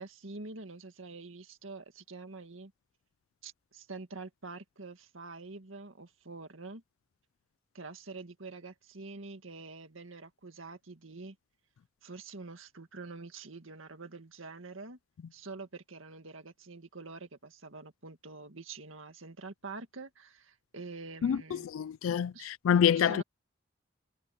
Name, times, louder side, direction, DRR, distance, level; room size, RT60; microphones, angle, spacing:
voice 1, 0.0-2.7 3.4-6.8 7.7-11.4 12.0-15.0 15.3-21.7 22.3-22.5 22.9-23.2, right 3 dB, 85° right, 2.0 m, -46 dB
voice 2, 21.2-23.2, left 8 dB, 85° left, 0.3 m, -27 dB
head